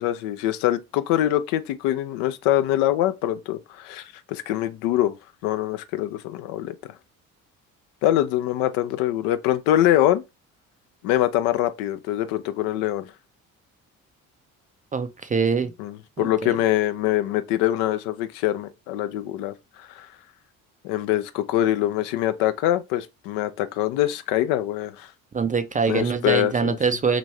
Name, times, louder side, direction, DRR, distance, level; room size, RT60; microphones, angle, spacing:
voice 1, 0.0-5.2 5.4-6.7 8.0-10.2 11.0-13.1 15.8-20.1 20.8-25.1 25.9-26.8, left 13 dB, 70° left, 0.5 m, -24 dB
voice 2, 14.9-15.7 16.2-16.6 25.3-27.2, right 5 dB, 20° right, 0.4 m, -24 dB
3.0 x 2.6 x 3.1 m
hypercardioid pair, 50°, 42 cm